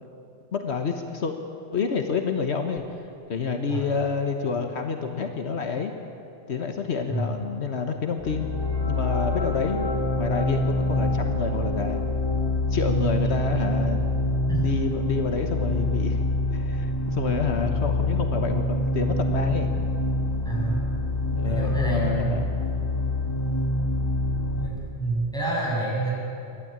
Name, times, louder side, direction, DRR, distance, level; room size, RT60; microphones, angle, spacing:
voice 1, 0.5-1.3 1.7-5.9 6.5-8.5 8.8-12.0 12.7-14.2 14.6-16.2 16.5-19.7 21.3-22.5, left 5 dB, 75° left, 5 dB, 1.5 m, -28 dB
sound 1, 8.2-24.7, left 1 dB, 20° left, 1.7 m, -26 dB
voice 2, 20.5-20.8 21.4-22.5 24.6-26.1, right 2 dB, 5° left, -5 dB, 6.9 m, -28 dB
28.0 x 12.5 x 8.8 m, 2.9 s
omnidirectional pair, 1.1 m